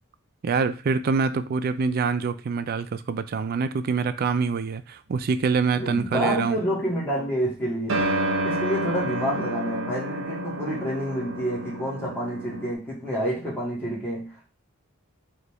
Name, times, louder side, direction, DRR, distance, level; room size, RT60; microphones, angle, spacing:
voice 1, 0.4-6.6, right 5 dB, 45° right, 0.3 m, -25 dB
voice 2, 5.7-8.0 8.4-14.3, equal, 10° left, 1.7 m, -28 dB
sound 1, 7.9-12.7, right 1 dB, 65° right, 0.7 m, -29 dB
4.0 x 3.2 x 3.5 m
head